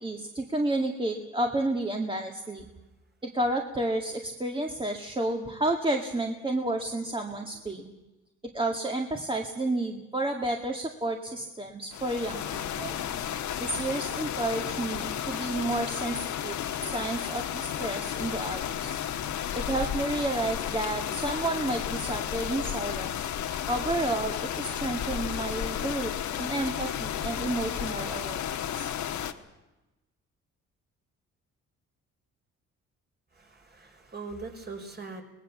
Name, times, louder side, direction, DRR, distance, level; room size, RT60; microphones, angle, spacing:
voice 1, 0.0-2.7 3.2-7.9 8.5-13.0 13.6-19.0 19.5-23.3 23.7-28.9, right 2 dB, 15° right, 2 dB, 2.1 m, -31 dB
sound 1, 11.9-29.3, left 10 dB, 70° left, 1.5 m, -33 dB
voice 2, 33.4-35.2, right 4 dB, 35° right, 2 dB, 5.0 m, -41 dB
24.0 x 19.5 x 7.2 m, 1.0 s
cardioid pair, 90°, 30 cm